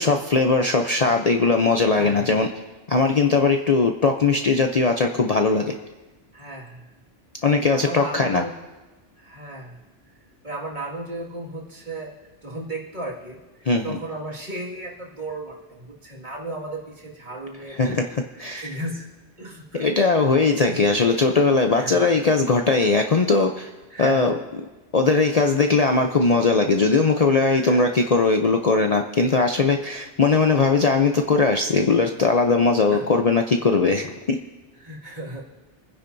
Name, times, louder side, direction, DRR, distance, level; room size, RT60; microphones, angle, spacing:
voice 1, 0.0-2.5 2.9-5.7 7.4-8.4 13.7-14.0 17.7-18.8 19.7-23.7 24.0-24.4 24.9-34.4, left 4 dB, 40° left, 4 dB, 0.6 m, -20 dB
voice 2, 1.9-2.4 6.3-6.8 7.7-8.5 9.2-9.8 10.4-12.1 12.4-18.1 18.6-19.1 19.4-19.8 20.6-20.8 21.7-22.2 23.9-24.3 27.7-27.9 32.9-33.1 34.8-35.5, right 1 dB, 45° right, -3 dB, 2.2 m, -35 dB
27.5 x 10.0 x 2.7 m, 1.2 s
omnidirectional pair, 1.2 m